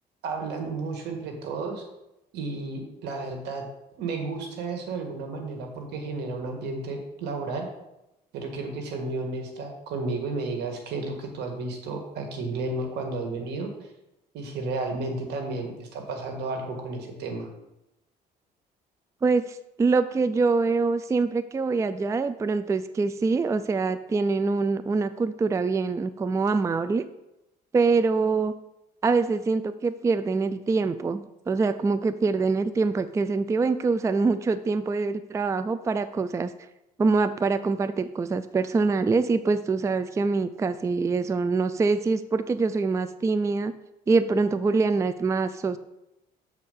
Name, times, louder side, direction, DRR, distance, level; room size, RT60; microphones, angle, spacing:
voice 1, 0.2-1.8 2.3-3.7 4.0-7.7 8.3-13.7 14.3-17.5, right 3 dB, 80° right, 3 dB, 1.7 m, -32 dB
voice 2, 19.2-27.0 27.7-28.5 29.0-36.5 37.0-43.7 44.1-45.8, right 4 dB, 20° right, 12 dB, 0.4 m, -24 dB
7.0 x 4.3 x 6.6 m, 0.90 s
cardioid pair, 110°, 17 cm